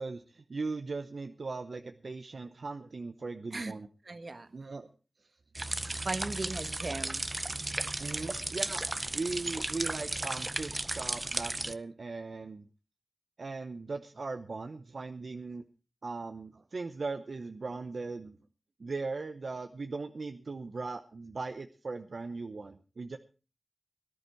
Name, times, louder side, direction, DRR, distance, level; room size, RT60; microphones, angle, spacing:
voice 1, 0.0-3.9 4.5-4.9 8.0-8.8 9.1-12.7 13.4-15.6 16.0-18.4 18.8-23.2, right 3 dB, 70° right, 7 dB, 0.8 m, -39 dB
voice 2, 4.0-4.5 6.0-7.2, right 3 dB, 55° right, 10 dB, 1.4 m, -37 dB
sound 1, 5.6-11.7, right 2 dB, 30° right, 0.7 m, -35 dB
18.0 x 11.0 x 4.5 m, 0.34 s
wide cardioid pair, 75°, 0 cm